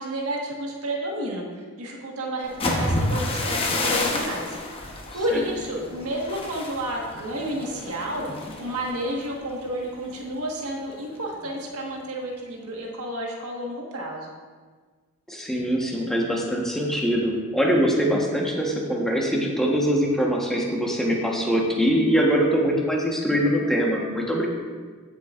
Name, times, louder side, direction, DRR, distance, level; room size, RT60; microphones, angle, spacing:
voice 1, 0.0-1.5 1.8-4.6 5.1-8.3 8.6-14.3, right 1 dB, 75° right, -1 dB, 1.5 m, -31 dB
sound 1, 2.4-10.3 10.7-11.0 11.3-11.8, left 1 dB, 25° left, 1.0 m, -30 dB
voice 2, 15.3-24.5, equal, ahead, -2 dB, 1.2 m, -23 dB
16.5 x 7.2 x 2.5 m, 1.5 s
head